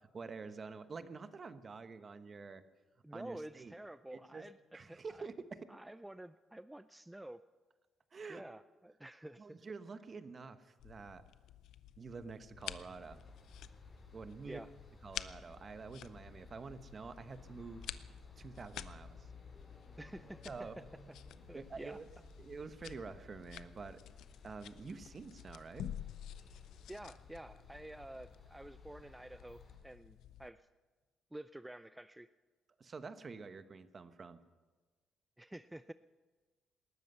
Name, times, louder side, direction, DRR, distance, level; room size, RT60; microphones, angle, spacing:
voice 1, 0.1-2.6 3.1-3.7 4.1-4.5 4.7-5.6 8.1-8.4 9.4-11.2 12.0-13.2 14.1-14.6 15.0-17.9 18.4-19.3 20.5-20.7 21.5-22.1 22.4-24.0 24.4-26.0 32.8-34.4, right 4 dB, 40° right, 11 dB, 1.0 m, -48 dB
voice 2, 3.0-5.3 5.7-7.4 8.3-9.7 14.4-14.7 20.0-20.8 21.5-22.0 26.9-30.7 31.3-32.3 35.4-35.9, right 1 dB, 10° right, 13 dB, 0.4 m, -50 dB
sound 1, 10.8-30.5, left 11 dB, 85° left, 0.5 m, -51 dB
sound 2, 12.6-29.8, left 2 dB, 40° left, 5.2 m, -57 dB
19.5 x 13.0 x 5.6 m, 1.3 s
cardioid pair, 90°, 0 cm